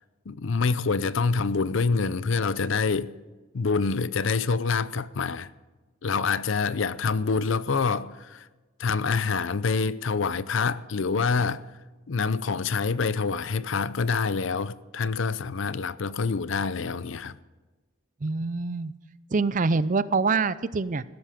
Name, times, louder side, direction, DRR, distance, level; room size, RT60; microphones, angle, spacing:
voice 1, 0.3-3.1 3.5-5.5 6.0-8.5 8.8-11.6 12.1-17.4, left 4 dB, 65° left, 0.5 m, -26 dB
voice 2, 18.2-18.9 19.3-21.0, right 4 dB, 40° right, 0.5 m, -25 dB
16.0 x 13.0 x 5.2 m
head